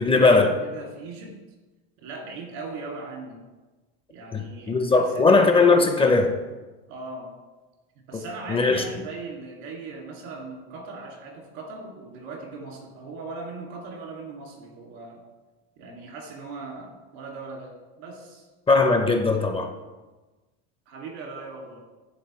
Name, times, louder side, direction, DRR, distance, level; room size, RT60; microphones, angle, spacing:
voice 1, 0.0-0.6 4.3-6.4 8.1-8.2 8.5-8.8 18.7-19.7, left 3 dB, 20° left, 0.4 m, -19 dB
voice 2, 0.6-1.3 2.0-3.4 4.1-5.4 6.9-7.3 8.1-15.2 15.8-17.7 18.0-18.5 20.9-21.8, right 3 dB, 80° right, 2.1 m, -39 dB
11.0 x 3.6 x 3.0 m
supercardioid pair, 115°, 31 cm